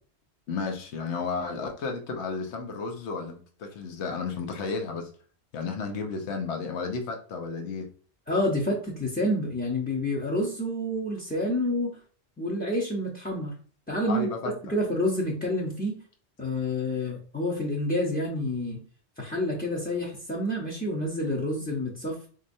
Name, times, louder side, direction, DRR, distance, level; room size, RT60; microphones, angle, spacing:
voice 1, 0.5-5.1 5.5-7.9 14.1-14.5, left 4 dB, 80° left, 4 dB, 1.0 m, -32 dB
voice 2, 8.3-12.0 12.4-13.5 13.9-14.3 14.7-15.9 16.4-18.8 19.2-22.3, left 1 dB, 10° left, -2 dB, 0.5 m, -28 dB
4.2 x 2.8 x 2.6 m, 0.43 s
omnidirectional pair, 1.1 m